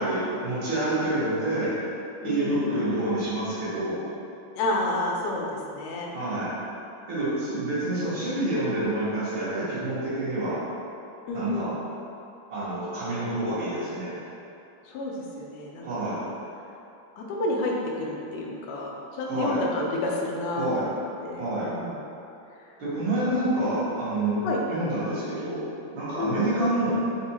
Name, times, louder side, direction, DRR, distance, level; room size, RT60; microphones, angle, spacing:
voice 1, 0.0-1.8 2.2-4.0 6.1-6.5 7.1-10.6 11.3-11.8 12.5-14.2 15.8-16.2 19.2-19.6 20.5-20.9 21.3-21.7 22.8-25.6 25.9-27.0, right 1 dB, 55° right, -11 dB, 1.7 m, -27 dB
voice 2, 2.2-2.8 4.6-6.1 11.3-11.7 14.9-15.8 16.1-16.3 17.2-20.6 21.2-22.0 24.4-24.6 26.2-26.3, left 2 dB, 75° left, -2 dB, 1.5 m, -30 dB
4.6 x 2.4 x 4.1 m, 2.7 s
omnidirectional pair, 3.4 m